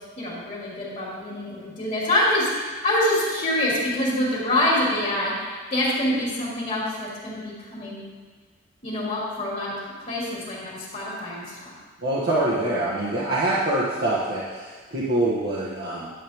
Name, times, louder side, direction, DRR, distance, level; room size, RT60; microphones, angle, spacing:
voice 1, 0.2-8.0 8.8-11.7, left 1 dB, 35° left, -6 dB, 2.6 m, -26 dB
voice 2, 12.0-16.1, right 1 dB, 50° right, -8 dB, 1.3 m, -25 dB
11.0 x 7.6 x 3.6 m, 1.5 s
head